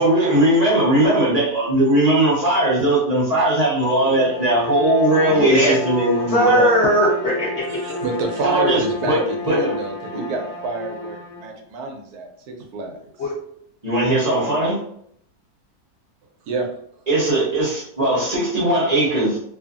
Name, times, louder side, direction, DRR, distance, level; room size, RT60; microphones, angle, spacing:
voice 1, 0.0-6.7 8.4-9.7 10.1-10.2 13.8-14.8 17.1-19.4, right 1 dB, 35° right, -6 dB, 0.7 m, -19 dB
Bowed string instrument, 4.0-11.5, left 2 dB, 75° left, 1.1 m, -30 dB
voice 2, 5.3-5.8 6.3-7.8 13.2-13.3, equal, 60° left, -5 dB, 0.7 m, -18 dB
voice 3, 7.7-13.1 16.5-16.7, right 3 dB, 75° right, 3 dB, 1.0 m, -28 dB
2.7 x 2.5 x 2.3 m, 0.68 s
omnidirectional pair, 1.7 m